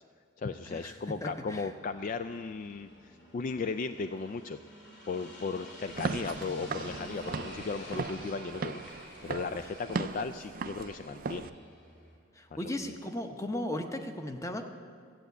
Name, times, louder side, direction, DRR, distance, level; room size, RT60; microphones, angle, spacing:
voice 1, 0.4-4.6 5.1-8.8 9.2-11.5 12.6-12.8, left 4 dB, 40° left, 10 dB, 0.3 m, -36 dB
sound 1, 0.6-12.2, equal, 60° left, 3.2 m, -50 dB
voice 2, 1.2-1.7 12.3-14.6, left 1 dB, 15° left, 5 dB, 0.8 m, -36 dB
Walk footsteps / Siren, 5.9-11.5, right 4 dB, 45° right, 0.4 m, -38 dB
14.5 x 8.3 x 8.0 m, 2.1 s
head